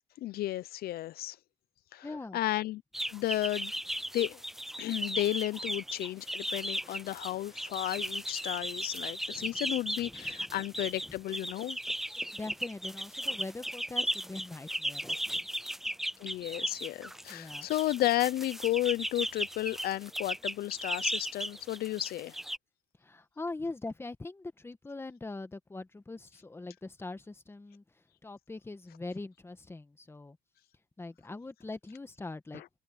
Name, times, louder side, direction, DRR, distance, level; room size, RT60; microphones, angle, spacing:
voice 1, 0.2-1.4 1.9-2.8 3.1-3.7 4.1-4.4 4.8-11.8 16.2-22.4 32.5-32.7, left 15 dB, 65° left, 0.6 m, -33 dB
voice 2, 2.0-2.4 9.3-9.6 10.0-10.6 12.3-15.4 17.3-17.7 23.0-27.8 28.2-30.4 31.0-32.6, left 2 dB, 15° left, 1.5 m, -42 dB
sound 1, 2.9-22.6, equal, ahead, 0.6 m, -36 dB
cardioid pair, 110°, 17 cm